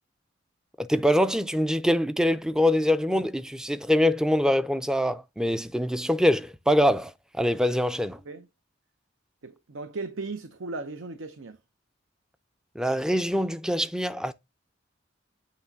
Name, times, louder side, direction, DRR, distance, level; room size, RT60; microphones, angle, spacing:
voice 1, 0.8-8.2 12.8-14.3, equal, 5° right, 0.4 m, -24 dB
voice 2, 9.4-11.6, right 3 dB, 80° right, 0.7 m, -36 dB
8.4 x 3.0 x 5.8 m
head